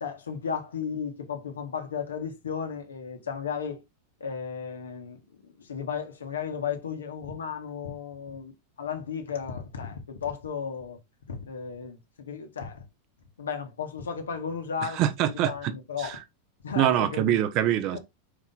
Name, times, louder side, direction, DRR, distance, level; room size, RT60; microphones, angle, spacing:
voice 1, 0.0-3.8 4.2-11.0 11.3-12.8 13.4-16.2 16.6-17.4 17.9-18.0, left 6 dB, 70° left, 1.6 m, -34 dB
voice 2, 14.8-15.7 16.0-16.2 16.8-18.0, right 12 dB, 40° right, 0.9 m, -24 dB
5.5 x 4.8 x 3.7 m
figure-of-eight pair, 90°, 0 cm